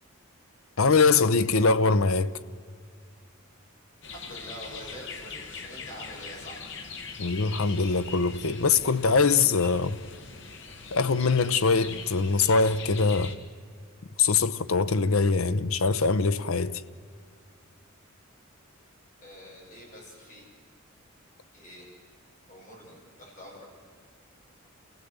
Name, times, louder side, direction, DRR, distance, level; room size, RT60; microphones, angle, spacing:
voice 1, 0.8-2.3 7.2-10.0 10.9-13.3 14.2-16.8, left 4 dB, 75° left, 0.8 m, -23 dB
sound 1, 4.0-13.3, left 5 dB, 60° left, 1.9 m, -42 dB
voice 2, 4.1-7.0 19.2-20.5 21.5-21.9 22.5-23.7, equal, 40° left, 6.8 m, -45 dB
29.0 x 16.5 x 8.1 m
head